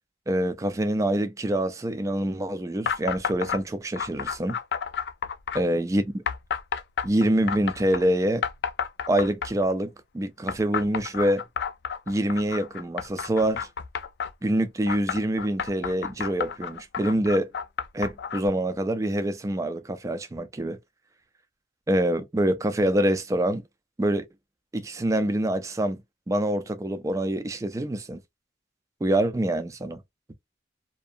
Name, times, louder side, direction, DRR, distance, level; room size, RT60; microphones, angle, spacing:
voice 1, 0.3-4.6 5.6-6.2 7.0-8.4 9.1-11.4 12.1-13.7 14.4-17.5 17.9-20.8 21.9-23.6 24.0-24.2 24.7-26.0 26.3-28.2 29.0-30.0, right 1 dB, 20° right, 0.3 m, -25 dB
sound 1, 2.9-3.6 4.0-5.6 6.3-8.0 8.4-9.7 10.5-14.3 14.9-18.5, left 7 dB, 70° left, 0.3 m, -31 dB
2.6 x 2.1 x 2.5 m
head